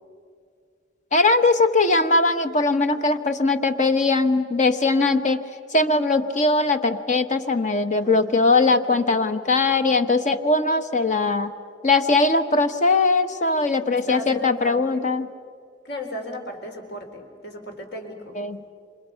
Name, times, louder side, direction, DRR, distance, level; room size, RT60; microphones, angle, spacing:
voice 1, 1.1-5.4 5.7-11.5 11.8-15.3 18.4-18.6, left 3 dB, 40° left, 9 dB, 1.2 m, -20 dB
voice 2, 8.0-9.2 13.9-15.0 15.8-18.4, left 1 dB, 60° left, 3 dB, 4.1 m, -36 dB
29.5 x 26.5 x 5.8 m, 2.1 s
head